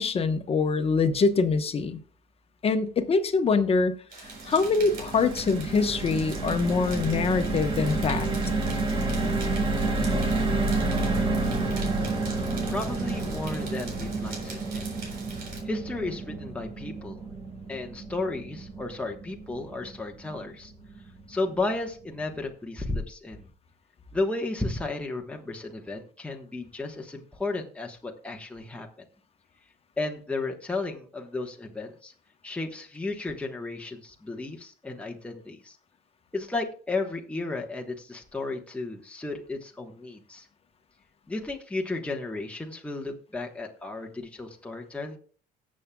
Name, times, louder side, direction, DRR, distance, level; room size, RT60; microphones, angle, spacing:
voice 1, 0.0-2.0 2.6-3.9 4.5-8.3, left 4 dB, 35° left, 1.1 m, -24 dB
sound 1, 4.1-15.6, right 4 dB, 65° right, 3.9 m, -44 dB
sound 2, 4.2-20.6 21.0-21.1 21.3-21.6, right 2 dB, 30° right, 1.6 m, -30 dB
voice 2, 12.7-14.8 15.6-17.2 17.7-20.7 21.3-23.5 24.1-29.1 30.0-32.1 32.4-35.8 36.3-40.5 41.3-45.2, left 2 dB, 5° left, 1.2 m, -33 dB
18.0 x 7.5 x 2.3 m
cardioid pair, 110°, 17 cm